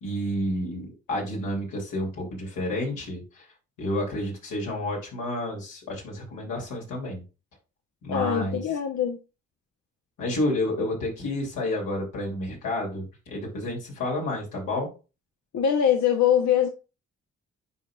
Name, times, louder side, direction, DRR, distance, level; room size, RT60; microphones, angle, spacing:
voice 1, 0.0-3.4 3.8-7.2 8.0-8.6 10.2-14.9, left 1 dB, 85° left, -2 dB, 2.7 m, -30 dB
voice 2, 8.1-9.2 15.5-16.7, left 9 dB, 65° left, 4 dB, 0.9 m, -23 dB
9.6 x 4.8 x 2.3 m, 0.31 s
supercardioid pair, 45°, 31 cm